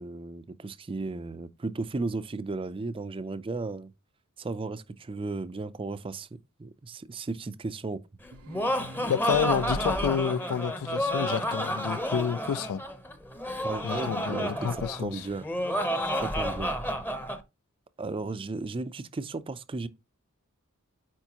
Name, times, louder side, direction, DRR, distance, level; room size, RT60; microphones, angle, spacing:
voice 1, 0.0-3.9 4.4-8.0 13.6-15.9 16.2-16.7 18.0-19.9, right 3 dB, 25° right, 0.4 m, -35 dB
Laughter, 8.2-17.4, equal, 10° left, 0.7 m, -30 dB
sound 1, 8.3-10.9, right 3 dB, 75° right, 0.6 m, -47 dB
voice 2, 9.1-12.8 13.8-15.3, left 8 dB, 70° left, 0.3 m, -29 dB
9.0 x 4.6 x 2.8 m
head